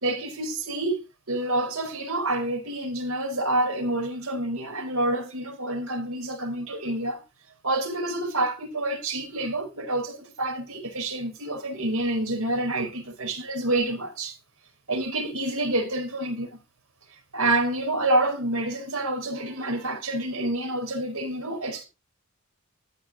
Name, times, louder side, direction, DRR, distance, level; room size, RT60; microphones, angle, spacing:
voice 1, 0.0-1.0 1.3-7.2 7.6-14.4 14.9-16.6 17.3-21.8, right 2 dB, 75° right, 4.7 m, -28 dB
14.0 x 5.3 x 4.9 m
head